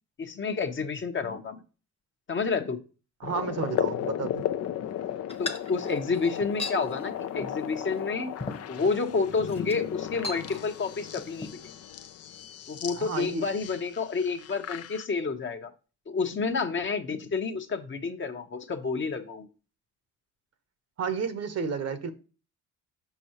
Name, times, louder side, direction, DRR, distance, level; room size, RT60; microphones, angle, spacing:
voice 1, 0.2-1.6 2.3-2.8 5.4-8.3 8.7-11.6 12.7-15.7 16.1-19.5, left 4 dB, 40° left, 1.0 m, -30 dB
sound 1, 3.2-15.1, left 10 dB, 55° left, 0.6 m, -35 dB
voice 2, 3.2-4.5 13.0-13.4 21.0-22.1, right 5 dB, 55° right, 1.0 m, -31 dB
sound 2, 5.3-6.8 7.4-7.6 8.0-8.1 8.4-9.0 9.5-9.8 10.2-10.9 11.2-11.5, left 3 dB, 20° left, 1.1 m, -37 dB
6.9 x 5.4 x 3.0 m
cardioid pair, 90°, 30 cm